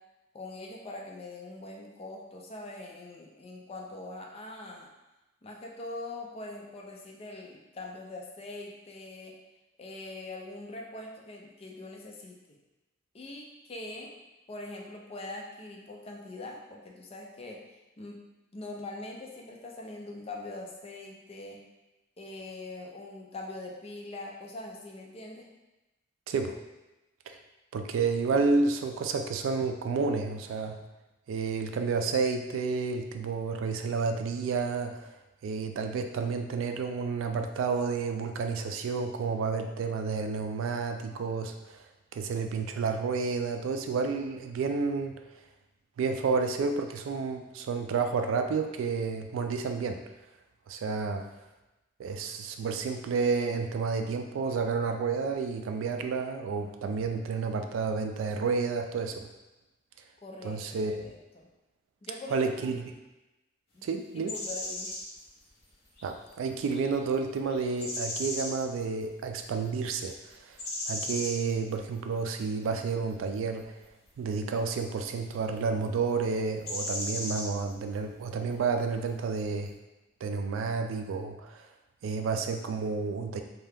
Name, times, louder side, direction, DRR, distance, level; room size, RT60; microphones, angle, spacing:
voice 1, 0.3-4.9 5.4-9.3 9.8-12.6 13.1-14.1 14.5-17.6 18.0-18.2 18.5-21.6 22.2-25.5 60.2-61.5 62.0-62.7 63.7-63.9 64.1-65.0, left 2 dB, 30° left, 0 dB, 0.4 m, -42 dB
voice 2, 27.7-30.8 31.3-35.1 35.4-41.8 42.1-45.1 46.0-50.0 50.7-51.2 52.0-59.3 60.4-60.9 62.3-62.8 63.8-64.3 66.0-70.1 70.4-70.6 70.9-73.7 74.2-79.7 80.2-81.6 82.0-83.4, right 4 dB, 80° right, 6 dB, 0.3 m, -30 dB
sound 1, 64.3-65.0 66.0-66.3 66.7-67.0 67.5-68.6 70.6-71.4 76.6-77.5, left 1 dB, 55° left, 0.8 m, -35 dB
2.7 x 2.3 x 3.4 m, 1.0 s
head